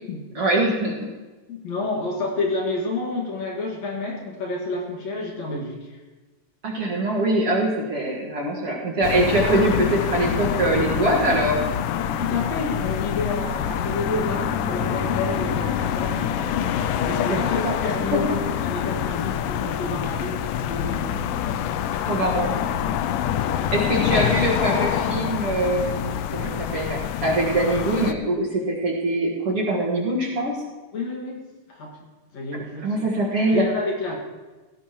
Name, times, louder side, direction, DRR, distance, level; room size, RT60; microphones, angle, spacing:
voice 1, 0.4-1.0 6.6-11.6 17.3-17.7 18.1-18.2 22.1-22.5 23.3-23.4 23.7-30.6 32.8-33.7, right 2 dB, 50° right, -4 dB, 2.2 m, -23 dB
voice 2, 1.5-6.0 12.2-16.2 16.9-21.3 30.9-31.4 31.7-31.9 32.3-33.1 33.5-34.2, left 3 dB, 55° left, -1 dB, 2.9 m, -29 dB
sound 1, 9.0-28.1, left 10 dB, 80° left, 2.2 m, -26 dB
sound 2, 11.3-18.0, right 4 dB, 30° left, 3.0 m, -40 dB
16.5 x 16.5 x 3.0 m, 1.2 s
omnidirectional pair, 3.9 m